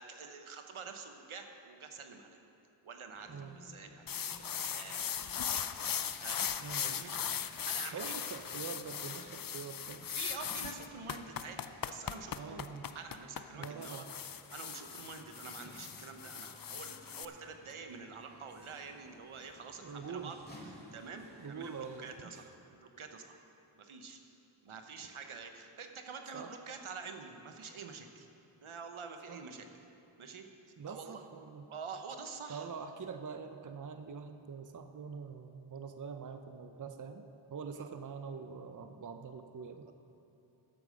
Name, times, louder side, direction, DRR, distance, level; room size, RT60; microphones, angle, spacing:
voice 1, 0.0-2.4 2.8-5.7 6.2-7.4 7.7-8.1 10.1-12.7 12.9-14.0 14.5-20.4 20.6-22.4 22.8-23.4 23.8-24.2 24.6-28.3 28.6-29.7 30.2-30.4 30.9-31.2 31.7-32.7 37.8-37.9 39.8-39.9, right 5 dB, 75° right, 5 dB, 1.1 m, -47 dB
sound 1, 3.1-22.1, equal, 20° left, 2.2 m, -57 dB
sound 2, 4.1-17.2, left 8 dB, 45° left, 0.5 m, -39 dB
voice 2, 6.6-7.0 7.9-10.1 12.4-12.9 13.5-14.1 19.8-20.3 21.4-22.4 26.3-26.5 29.3-29.4 30.8-31.7 32.5-39.9, right 5 dB, 40° right, 7 dB, 0.6 m, -44 dB
13.5 x 8.5 x 5.2 m, 2.9 s
wide cardioid pair, 60°, 49 cm